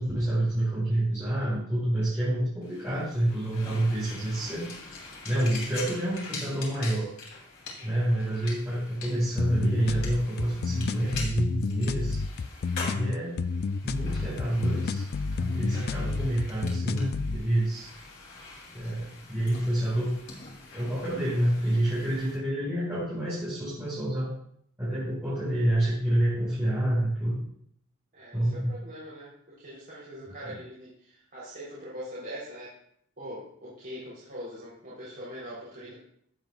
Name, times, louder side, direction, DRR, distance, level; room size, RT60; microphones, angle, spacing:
voice 1, 0.0-4.7 5.2-7.1 7.8-12.2 12.9-13.4 13.8-15.0 15.4-17.9 18.7-20.1 20.7-24.3 24.8-27.4 28.3-28.8, right 1 dB, 10° right, -11 dB, 4.4 m, -28 dB
sound 1, 2.6-22.4, left 3 dB, 75° left, 3.0 m, -44 dB
sound 2, 9.4-17.4, left 4 dB, 45° left, 0.3 m, -30 dB
voice 2, 28.1-32.8 33.2-35.9, equal, 45° right, -9 dB, 3.3 m, -42 dB
15.5 x 7.3 x 2.3 m, 0.65 s
head